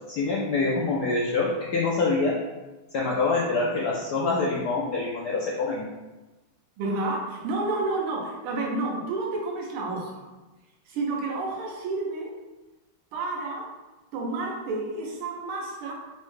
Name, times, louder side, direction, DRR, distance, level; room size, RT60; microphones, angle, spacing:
voice 1, 0.1-2.4 2.9-5.8, left 3 dB, 85° left, -4 dB, 0.9 m, -25 dB
voice 2, 6.8-10.3 10.9-12.3 13.1-13.7 14.1-15.9, right 2 dB, 90° right, -1 dB, 1.7 m, -30 dB
4.6 x 2.1 x 3.1 m, 1.1 s
omnidirectional pair, 2.4 m